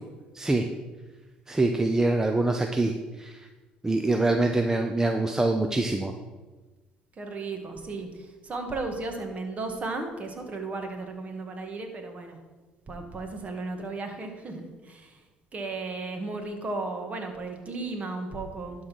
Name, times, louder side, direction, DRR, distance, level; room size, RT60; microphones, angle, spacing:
voice 1, 1.5-3.4 3.8-6.1, right 2 dB, 15° right, 5 dB, 0.7 m, -25 dB
voice 2, 7.2-12.4 12.9-15.2 15.5-18.9, right 3 dB, 35° right, 4 dB, 1.9 m, -35 dB
11.5 x 4.0 x 6.2 m, 1.2 s
hypercardioid pair, 70°, 4 cm